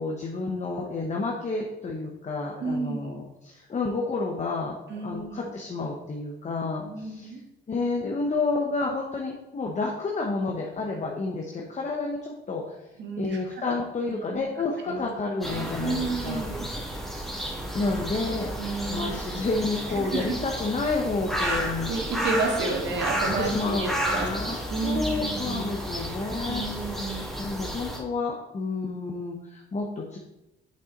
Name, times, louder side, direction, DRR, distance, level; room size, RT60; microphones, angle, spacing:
voice 1, 0.0-4.8 5.0-7.3 7.7-12.8 13.2-16.8 17.7-21.9 23.4-30.2, left 3 dB, 35° left, 0 dB, 1.1 m, -30 dB
voice 2, 2.6-3.1 4.9-5.5 6.8-7.4 13.0-13.7 14.1-14.4 14.8-15.1 15.5-16.7 18.6-19.2 20.0-20.3 21.4-25.7 26.5-27.2, right 3 dB, 65° right, 2 dB, 1.6 m, -32 dB
sound 1, 15.4-28.0, equal, ahead, 2.2 m, -32 dB
7.0 x 5.6 x 3.9 m, 0.93 s
cardioid pair, 90°, 20 cm